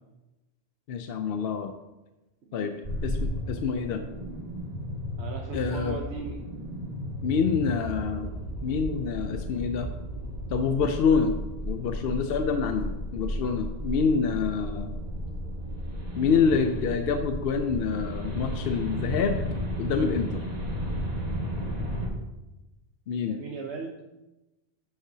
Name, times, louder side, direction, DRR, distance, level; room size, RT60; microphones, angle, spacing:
voice 1, 0.9-1.7 2.5-2.7 3.0-4.0 5.5-6.0 7.2-8.3 8.6-9.9 10.5-11.4 11.6-14.9 16.2-19.4 19.8-20.4 23.1-23.4, left 6 dB, 65° left, 7 dB, 0.8 m, -26 dB
voice 2, 2.4-2.8 5.2-6.4 23.3-23.9, right 4 dB, 80° right, 1 dB, 1.1 m, -38 dB
sound 1, 2.8-22.1, equal, 40° right, 1.5 m, -34 dB
10.5 x 6.8 x 2.8 m, 1.0 s
omnidirectional pair, 1.1 m